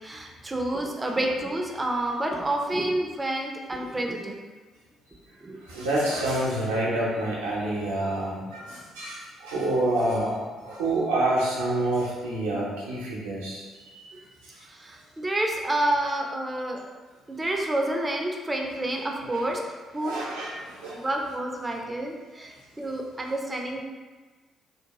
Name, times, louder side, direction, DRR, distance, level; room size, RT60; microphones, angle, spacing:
voice 1, 0.0-4.3 5.4-5.6 14.6-16.8 17.3-20.2 20.9-23.8, right 1 dB, 25° right, 1 dB, 0.4 m, -29 dB
voice 2, 5.6-10.4 10.6-13.6 13.9-14.0 19.3-19.4 20.0-21.0, right 1 dB, 80° right, -6 dB, 0.6 m, -27 dB
2.7 x 2.2 x 2.9 m, 1.3 s
figure-of-eight pair, 45°, 0 cm